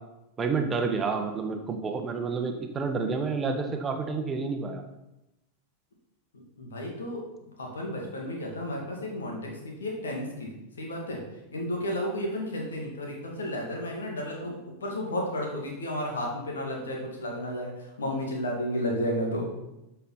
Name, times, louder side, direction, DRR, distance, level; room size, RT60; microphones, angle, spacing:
voice 1, 0.4-4.8, right 4 dB, 20° right, 5 dB, 1.1 m, -29 dB
voice 2, 6.3-7.2 7.6-10.5 10.8-11.2 11.5-17.7 18.0-19.5, left 1 dB, 65° left, 0 dB, 2.4 m, -32 dB
13.0 x 5.7 x 4.2 m, 0.92 s
figure-of-eight pair, 90°, 0 cm